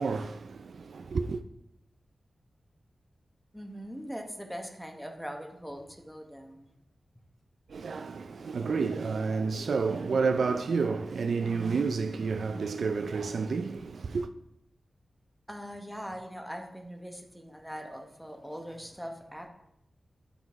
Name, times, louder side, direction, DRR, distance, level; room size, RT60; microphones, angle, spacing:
voice 1, 0.0-1.4 7.7-14.3, right 4 dB, 70° right, 0.3 m, -30 dB
voice 2, 3.5-6.7 15.5-19.5, equal, ahead, 0.9 m, -41 dB
9.9 x 3.9 x 4.6 m
wide cardioid pair, 150°, 0 cm